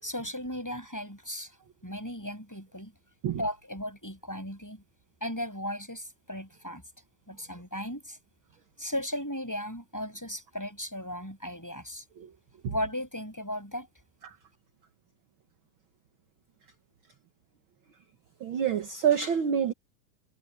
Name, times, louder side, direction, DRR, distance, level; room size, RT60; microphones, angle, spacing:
voice 1, 0.0-1.5 1.8-2.9 3.4-4.8 5.2-6.8 7.3-8.2 8.8-12.0 12.6-13.9, left 1 dB, 5° left, 6.7 m, -36 dB
voice 2, 18.4-19.7, right 8 dB, 55° right, 1.6 m, -27 dB
omnidirectional pair, 3.7 m